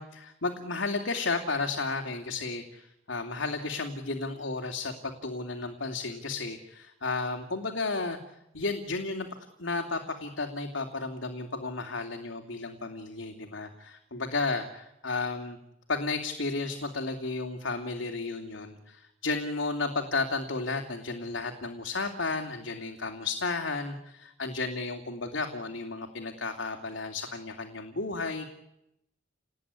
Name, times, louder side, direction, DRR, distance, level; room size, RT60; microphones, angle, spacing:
voice 1, 0.0-8.2 8.5-9.3 9.6-15.6 15.9-28.5, left 3 dB, 90° left, 3 dB, 2.8 m, -33 dB
29.5 x 19.5 x 9.7 m, 0.85 s
head